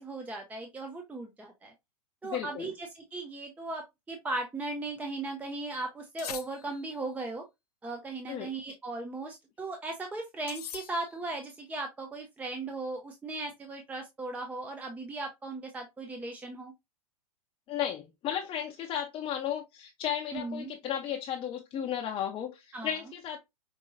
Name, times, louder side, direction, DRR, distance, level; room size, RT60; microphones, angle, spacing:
voice 1, 0.0-1.7 2.2-7.4 7.8-16.7 20.3-20.7 22.7-22.9, right 2 dB, 10° right, 0.5 m, -37 dB
voice 2, 2.2-2.7 8.3-8.5 17.7-23.4, left 9 dB, 25° left, 0.6 m, -34 dB
sound 1, 6.2-7.1 10.5-11.4, left 9 dB, 85° left, 0.6 m, -43 dB
5.2 x 2.7 x 2.5 m
hypercardioid pair, 120°, 19 cm